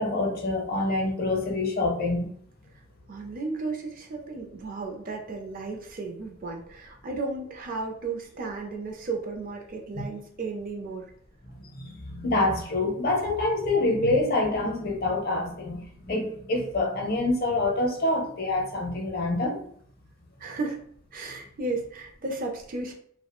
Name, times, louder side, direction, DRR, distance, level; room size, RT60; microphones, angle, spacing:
voice 1, 0.0-2.3 11.5-19.6, left 2 dB, 50° left, 1 dB, 0.6 m, -26 dB
voice 2, 3.1-11.1 20.4-20.8 21.1-22.9, right 3 dB, 40° right, 2 dB, 0.4 m, -34 dB
2.3 x 2.1 x 2.9 m, 0.62 s
head